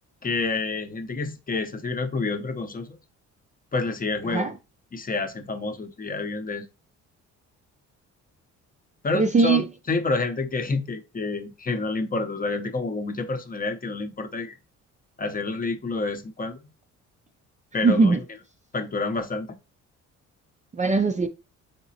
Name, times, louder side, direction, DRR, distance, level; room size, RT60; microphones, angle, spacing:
voice 1, 0.2-3.0 3.7-4.5 4.9-6.7 9.0-14.6 15.2-16.6 17.7-18.2 18.7-19.6, left 3 dB, 30° left, 0.7 m, -28 dB
voice 2, 9.1-9.6 17.8-18.2 20.7-21.3, right 4 dB, 25° right, 0.5 m, -20 dB
3.9 x 3.7 x 2.8 m
cardioid pair, 90°, 30 cm